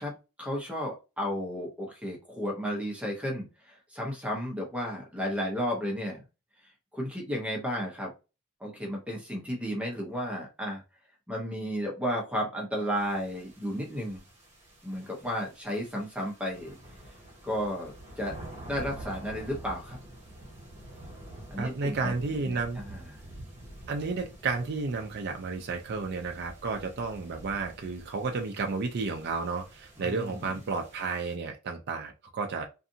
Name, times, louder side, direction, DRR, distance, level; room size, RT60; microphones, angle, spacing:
voice 1, 0.0-6.2 6.9-8.1 8.6-10.8 11.3-14.2 14.8-16.8 17.4-18.4 18.6-20.0 21.5-23.0 30.0-30.5, equal, 5° right, 0.8 m, -33 dB
sound 1, 13.0-31.4, right 1 dB, 30° right, 1.2 m, -48 dB
voice 2, 21.6-22.8 23.9-32.7, right 4 dB, 50° right, 0.4 m, -32 dB
2.6 x 2.4 x 2.7 m
head